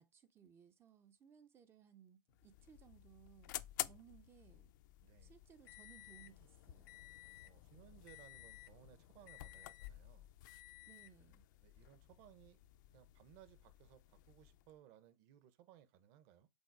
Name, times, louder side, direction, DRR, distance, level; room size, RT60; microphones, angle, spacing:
voice 1, 0.0-3.5 3.9-4.7 5.2-7.0 10.9-11.4, right 9 dB, 20° right, 0.5 m, -63 dB
sound 1, 2.3-14.7, left 16 dB, 60° left, 0.5 m, -52 dB
voice 2, 5.0-5.4 7.4-10.3 11.6-12.6 12.9-16.5, right 11 dB, 45° right, 0.9 m, -63 dB
5.4 x 3.8 x 4.7 m
supercardioid pair, 145°, 12 cm